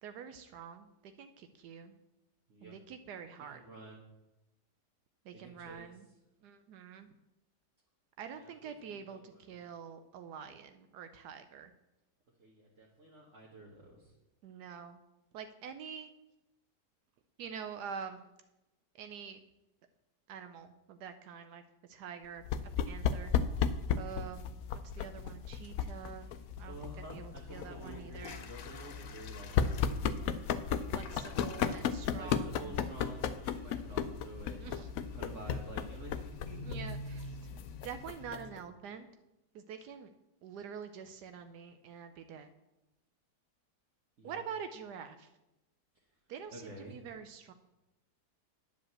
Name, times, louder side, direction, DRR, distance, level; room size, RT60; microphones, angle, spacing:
voice 1, 0.0-1.9 2.6-3.6 5.3-6.1 6.4-7.1 8.2-11.7 14.4-15.0 15.3-16.1 17.4-18.2 19.0-19.4 20.3-21.6 21.9-22.4 22.9-23.3 24.0-24.6 24.9-26.3 26.6-26.8 27.1-28.4 30.9-32.8 34.6-34.9 36.6-37.4 37.8-39.1 39.5-40.1 40.4-42.5 44.2-45.3 46.3-47.5, right 7 dB, 80° right, 9 dB, 1.2 m, -46 dB
voice 2, 3.4-4.0 5.3-6.0 8.3-9.6 12.4-14.1 26.6-30.3 32.2-34.6 35.1-36.7 38.5-38.7 44.2-44.4 46.5-47.1, right 2 dB, 50° right, -3 dB, 1.7 m, -50 dB
sound 1, 22.4-38.6, left 7 dB, 70° left, 0.9 m, -35 dB
Toilet flush, 26.9-27.0 27.5-38.3, left 7 dB, 85° left, 1.5 m, -53 dB
9.7 x 5.2 x 7.8 m, 0.96 s
omnidirectional pair, 1.8 m